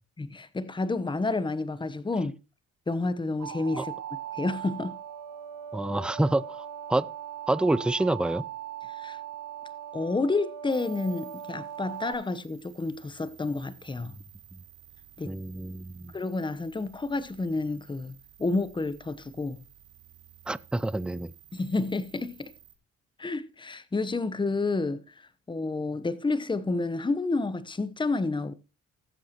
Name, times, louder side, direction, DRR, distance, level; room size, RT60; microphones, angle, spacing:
voice 1, 0.2-2.3 2.9-3.9 4.3-4.9 8.9-9.2 9.9-14.1 15.2-15.3 16.1-19.6 21.5-22.5 23.2-28.5, left 3 dB, 15° left, 0.9 m, -30 dB
sound 1, 3.4-12.1, right 10 dB, 75° right, 6.1 m, -39 dB
voice 2, 5.7-7.1 7.5-8.4 14.5-14.6 15.2-16.1 20.5-21.3, right 2 dB, 5° right, 0.4 m, -27 dB
sound 2, 10.7-22.7, right 10 dB, 60° right, 4.3 m, -55 dB
19.5 x 7.6 x 3.0 m
cardioid pair, 90°, 30 cm